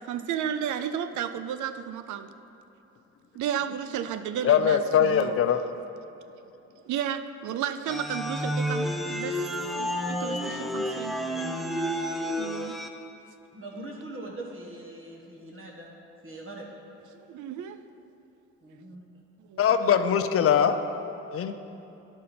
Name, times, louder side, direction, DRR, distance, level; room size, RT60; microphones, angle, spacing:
voice 1, 0.0-2.3 3.3-5.4 6.9-9.5 9.8-11.2 12.4-12.8 17.3-17.8 19.5-19.6 20.4-20.7, right 9 dB, 75° right, 11 dB, 0.5 m, -33 dB
voice 2, 4.4-5.6 19.6-20.8 21.3-21.5, left 8 dB, 50° left, 8 dB, 0.5 m, -21 dB
sound 1, 7.9-12.9, equal, ahead, 0.5 m, -30 dB
voice 3, 13.5-15.9 16.2-16.7 18.6-19.0, right 2 dB, 45° right, -2 dB, 1.2 m, -41 dB
10.5 x 5.3 x 4.2 m, 2.8 s
cardioid pair, 90°, 30 cm